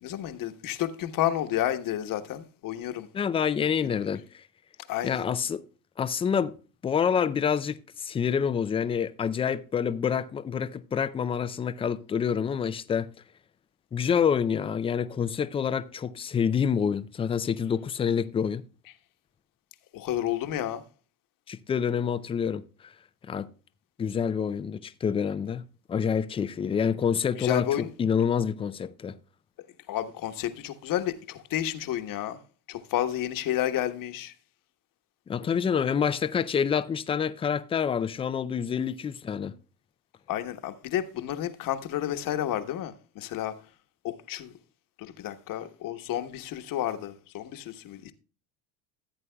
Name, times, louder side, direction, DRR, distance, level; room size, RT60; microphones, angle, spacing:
voice 1, 0.0-3.1 3.8-4.0 4.9-5.3 19.9-20.8 27.4-27.9 29.9-32.4 32.7-34.3 40.3-43.5 44.0-44.5 45.0-48.1, left 12 dB, 45° left, 1.2 m, -31 dB
voice 2, 3.1-4.4 5.0-5.6 6.0-6.5 6.8-13.1 13.9-18.6 21.5-22.9 23.2-23.5 24.0-29.2 35.3-39.6, left 7 dB, 15° left, 0.3 m, -27 dB
15.0 x 8.3 x 2.2 m
supercardioid pair, 95°, 44 cm